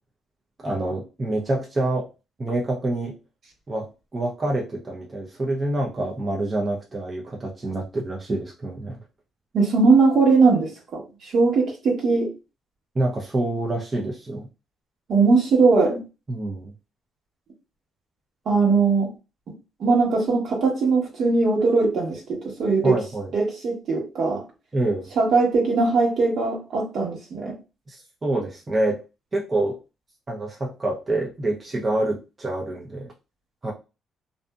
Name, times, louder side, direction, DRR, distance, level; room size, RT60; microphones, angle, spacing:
voice 1, 0.6-2.1 2.4-3.2 3.7-9.0 12.9-14.5 16.3-16.7 22.8-23.3 24.7-25.1 27.9-29.0 29.3-29.8 30.3-33.1 33.6-33.7, right 2 dB, 30° right, -2 dB, 0.6 m, -26 dB
voice 2, 9.5-12.3 15.1-16.0 18.5-19.1 19.8-22.9 23.3-24.4 25.2-27.5, right 4 dB, 65° right, -1 dB, 1.2 m, -20 dB
2.6 x 2.5 x 2.3 m, 0.29 s
cardioid pair, 90°, 0 cm